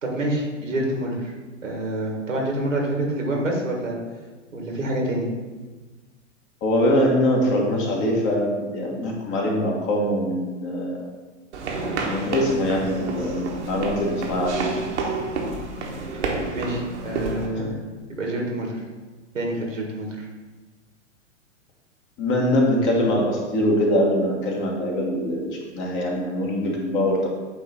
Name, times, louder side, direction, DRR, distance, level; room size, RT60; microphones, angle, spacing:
voice 1, 0.0-1.3 1.6-4.0 4.5-5.3 16.5-17.7 18.2-18.8 19.3-20.3, right 1 dB, 80° right, 0 dB, 1.8 m, -27 dB
voice 2, 6.6-11.0 12.0-14.6 17.5-17.7 22.2-27.3, left 1 dB, 30° left, -1 dB, 1.4 m, -23 dB
sound 1, 11.5-17.5, right 3 dB, 65° right, 1.3 m, -29 dB
8.6 x 3.1 x 4.3 m, 1.3 s
figure-of-eight pair, 105°, 38 cm